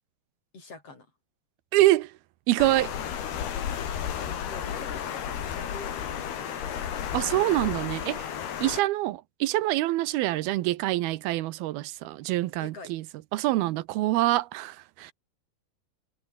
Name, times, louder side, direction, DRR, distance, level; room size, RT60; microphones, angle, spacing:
voice 1, 0.5-1.1 4.2-6.8 8.1-8.6 12.6-12.9, left 3 dB, 40° left, 6.5 m, -46 dB
voice 2, 1.7-2.1 2.5-2.9 7.1-8.3 8.6-13.0 13.3-15.1, right 17 dB, 85° right, 2.7 m, -25 dB
Water, 2.6-8.8, left 9 dB, 90° left, 4.8 m, -33 dB
omnidirectional pair, 4.4 m